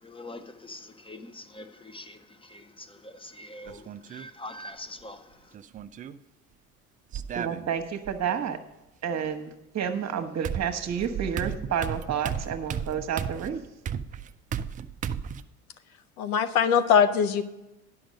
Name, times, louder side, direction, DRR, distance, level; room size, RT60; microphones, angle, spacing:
voice 1, 0.0-5.4, left 1 dB, 10° left, 0.7 m, -44 dB
sound 1, 3.7-4.3 5.5-6.2 7.1-8.1 9.8-9.9 10.4-15.4, right 8 dB, 20° right, 0.3 m, -34 dB
voice 2, 7.3-8.6 9.0-13.7, right 8 dB, 35° right, 1.2 m, -30 dB
voice 3, 16.2-17.4, left 7 dB, 75° left, 0.8 m, -21 dB
10.0 x 6.3 x 6.3 m
figure-of-eight pair, 65°, 44 cm